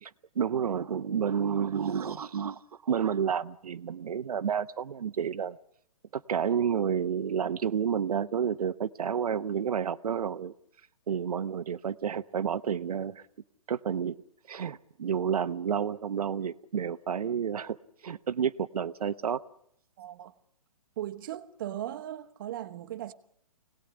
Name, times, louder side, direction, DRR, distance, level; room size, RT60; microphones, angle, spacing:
voice 1, 0.0-5.6 6.1-10.5 11.1-13.2 13.7-14.1 14.5-17.8 18.0-19.4, right 7 dB, 75° right, 0.9 m, -30 dB
voice 2, 20.0-20.3 21.0-23.1, right 12 dB, 35° right, 1.1 m, -38 dB
25.0 x 18.5 x 9.8 m
hypercardioid pair, 160°, 19 cm